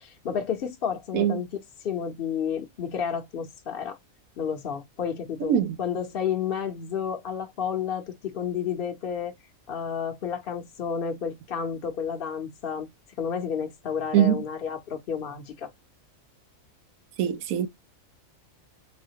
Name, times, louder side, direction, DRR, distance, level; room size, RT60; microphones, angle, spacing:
voice 1, 0.0-1.5 1.8-4.0 4.4-9.3 9.7-12.9 13.2-15.7, left 7 dB, 55° left, 0.8 m, -31 dB
voice 2, 5.5-5.8 14.1-14.4 17.2-17.7, right 10 dB, 90° right, 1.1 m, -22 dB
4.1 x 2.3 x 2.7 m
omnidirectional pair, 1.4 m